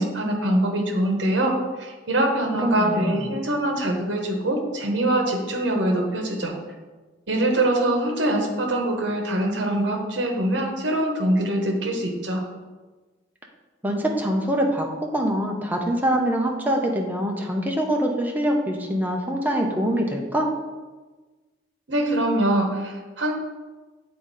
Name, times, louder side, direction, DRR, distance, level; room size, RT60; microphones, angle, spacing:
voice 1, 0.0-6.5 7.3-12.4 21.9-23.3, right 1 dB, 70° right, 2 dB, 1.0 m, -23 dB
voice 2, 2.6-3.2 13.8-14.9 15.1-20.5, equal, 10° right, 0 dB, 0.7 m, -24 dB
7.7 x 3.8 x 4.1 m, 1.3 s
head